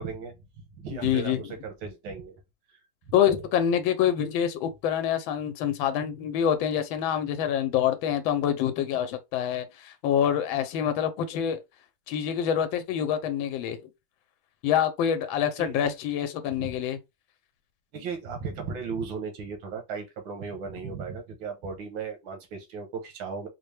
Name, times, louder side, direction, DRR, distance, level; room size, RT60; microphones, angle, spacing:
voice 1, 0.0-2.4 2.7-2.8 3.1-3.5 15.6-15.9 16.4-16.7 17.9-23.5, right 5 dB, 80° right, 1.8 m, -36 dB
voice 2, 0.9-1.5 3.1-11.6 12.1-13.8 14.6-17.0, left 9 dB, 90° left, 1.4 m, -26 dB
4.3 x 2.1 x 3.2 m
omnidirectional pair, 2.1 m